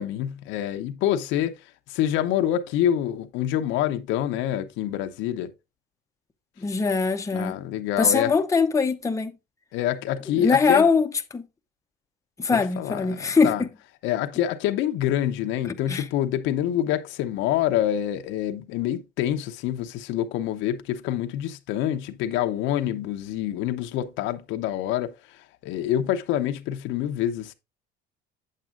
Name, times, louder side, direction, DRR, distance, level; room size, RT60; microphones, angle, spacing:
voice 1, 0.0-1.5 1.9-5.5 7.3-8.3 9.7-10.9 12.5-13.6 14.0-27.5, left 11 dB, 75° left, 0.8 m, -26 dB
voice 2, 6.6-7.5 8.0-9.3 10.3-11.4 12.4-13.7 15.9-16.0, left 5 dB, 15° left, 0.7 m, -22 dB
8.2 x 7.5 x 2.5 m
supercardioid pair, 95°, 20 cm